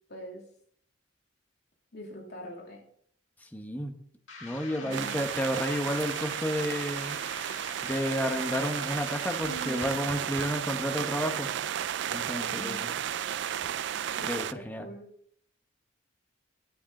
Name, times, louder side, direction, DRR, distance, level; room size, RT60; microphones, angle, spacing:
voice 1, 0.1-0.4 1.9-2.8 4.8-5.2 9.4-10.1 12.3-12.8 14.2-15.1, equal, 60° left, -1 dB, 2.8 m, -43 dB
voice 2, 3.4-4.0 4.4-7.2 7.8-11.5 12.1-12.9 14.2-14.9, equal, 10° left, 5 dB, 1.0 m, -31 dB
sound 1, 4.3-10.1, left 4 dB, 90° left, 1.9 m, -46 dB
sound 2, 4.9-14.5, right 10 dB, 65° right, 0.4 m, -33 dB
sound 3, 9.5-10.6 13.6-13.7, right 1 dB, 10° right, 2.0 m, -46 dB
9.3 x 9.1 x 3.8 m, 0.64 s
head